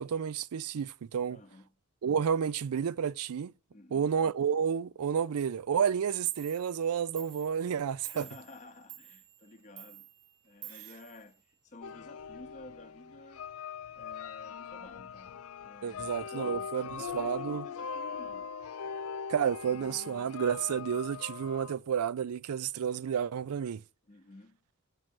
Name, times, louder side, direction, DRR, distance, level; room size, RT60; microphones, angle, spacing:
voice 1, 0.0-1.4 2.0-3.5 3.9-8.2 15.8-17.7 19.3-23.8, right 7 dB, 80° right, 0.4 m, -31 dB
voice 2, 1.3-1.8 3.7-4.1 8.0-10.1 10.4-13.4 14.0-18.5 24.1-24.6, left 2 dB, 35° left, 0.7 m, -52 dB
Clock, 5.9-6.0 6.3-11.9, right 14 dB, 60° right, 1.0 m, -50 dB
sound 1, 11.8-21.8, left 6 dB, 70° left, 0.4 m, -41 dB
6.4 x 4.7 x 5.9 m
head